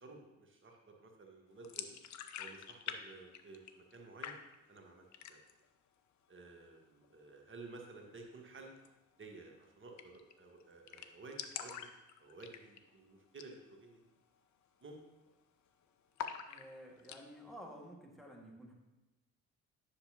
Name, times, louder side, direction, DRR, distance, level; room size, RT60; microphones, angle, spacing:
voice 1, 0.0-2.0 2.4-4.4 4.7-5.4 6.3-8.7 9.2-11.9 12.2-14.0 14.8-15.0, right 3 dB, 30° right, 2 dB, 1.5 m, -53 dB
sound 1, 1.6-3.0 3.2-4.0 4.2-4.8 5.1-5.6 6.0-6.1 6.4-7.1 8.7-8.9 9.2-9.3 9.5-9.6 10.0-10.3 10.6-10.7 10.9-12.9 13.3-13.6 13.9-14.0 14.5-14.8 15.1-15.7 16.2-17.2, left 9 dB, 45° left, 0.7 m, -45 dB
voice 2, 16.4-18.7, equal, ahead, -1 dB, 1.8 m, -52 dB
10.0 x 5.8 x 2.9 m, 1.0 s
figure-of-eight pair, 45°, 40 cm